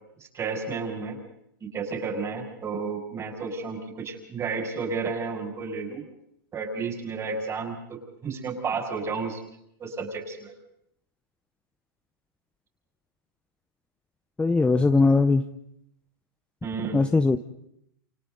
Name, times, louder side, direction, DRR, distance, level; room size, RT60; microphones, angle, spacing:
voice 1, 0.3-1.2 1.6-6.0 6.5-9.4 9.8-10.5 16.6-17.1, right 4 dB, 20° right, 1 dB, 6.4 m, -32 dB
voice 2, 14.4-15.4 16.9-17.4, left 3 dB, 10° left, 8 dB, 0.8 m, -20 dB
29.5 x 28.5 x 4.0 m, 0.75 s
hypercardioid pair, 125°, 13 cm